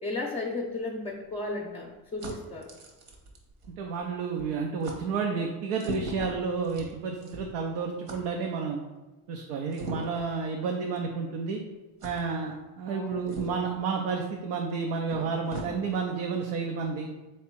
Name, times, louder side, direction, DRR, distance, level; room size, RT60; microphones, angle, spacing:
voice 1, 0.0-2.7 12.9-13.6, left 2 dB, 15° left, -1 dB, 0.4 m, -35 dB
sound 1, 0.6-4.1 4.4-4.5 4.8-5.0 5.7-7.6 8.1-8.2 9.7-10.3 11.0-11.1 12.0-12.2 13.3-13.7 14.7-14.8 15.1-15.7, right 1 dB, 70° right, 1.2 m, -41 dB
voice 2, 3.8-8.8 9.3-11.6 12.0-17.1, right 5 dB, 90° right, 1 dB, 0.6 m, -31 dB
3.5 x 3.1 x 4.4 m, 1.1 s
supercardioid pair, 85°, 47 cm